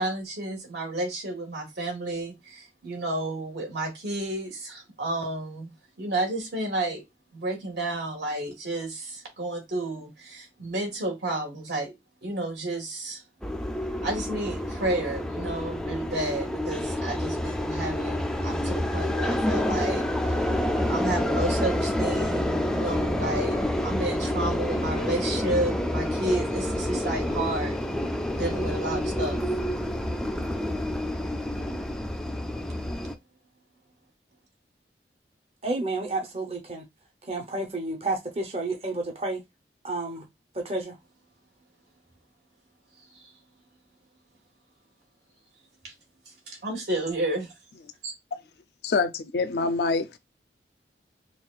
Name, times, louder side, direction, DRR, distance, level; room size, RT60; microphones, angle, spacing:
voice 1, 0.0-7.0 7.3-12.0 12.2-13.2 14.0-20.4 20.9-27.8 28.3-29.4 43.1-43.3 45.8-45.9 46.5-47.5 48.0-48.1, right 2 dB, 75° right, 1.6 m, -31 dB
sound 1, 13.4-33.1, left 1 dB, 5° left, 0.3 m, -28 dB
voice 2, 35.6-36.8 37.3-39.4 39.8-40.2 40.5-41.0, right 2 dB, 35° right, 0.7 m, -30 dB
voice 3, 48.8-50.2, left 4 dB, 65° left, 0.4 m, -25 dB
5.8 x 2.3 x 2.3 m
head